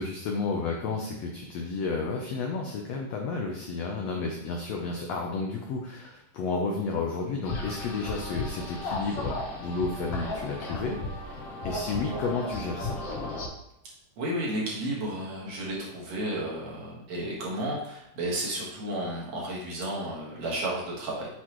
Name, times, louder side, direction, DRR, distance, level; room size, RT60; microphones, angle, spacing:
voice 1, 0.0-11.3 11.6-13.0, left 4 dB, 85° left, 1 dB, 1.4 m, -32 dB
sound 1, 7.4-13.5, left 2 dB, 55° left, 2.0 m, -34 dB
voice 2, 14.2-21.3, right 1 dB, 55° right, -4 dB, 2.5 m, -32 dB
8.3 x 6.5 x 3.1 m, 0.79 s
omnidirectional pair, 4.1 m